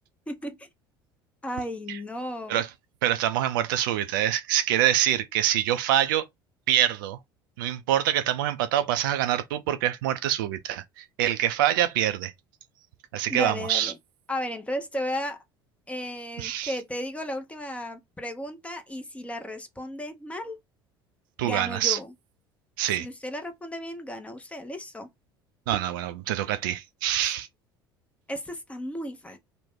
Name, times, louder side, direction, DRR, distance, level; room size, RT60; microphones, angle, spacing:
voice 1, 0.3-0.7 1.4-2.6 13.3-14.0 14.3-15.4 15.9-20.6 21.4-22.1 23.0-25.1 27.2-27.3 28.3-29.4, equal, 10° left, 0.7 m, -34 dB
voice 2, 3.0-6.3 6.7-7.2 7.6-12.3 13.1-13.9 16.4-16.8 21.4-22.0 22.8-23.1 25.7-27.5, right 12 dB, 60° right, 0.4 m, -25 dB
3.0 x 2.1 x 3.6 m
figure-of-eight pair, 65°, 12 cm